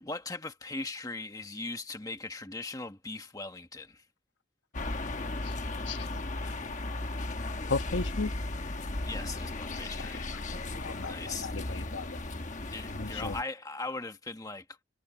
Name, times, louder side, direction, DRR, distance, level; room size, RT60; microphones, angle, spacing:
voice 1, 0.0-4.0 9.0-10.3 10.8-11.5 12.7-14.6, left 3 dB, 20° left, 1.3 m, -39 dB
sound 1, 4.7-13.4, left 2 dB, 40° left, 1.2 m, -36 dB
voice 2, 7.7-8.3 10.7-12.2 12.9-13.3, left 3 dB, 75° left, 1.2 m, -35 dB
head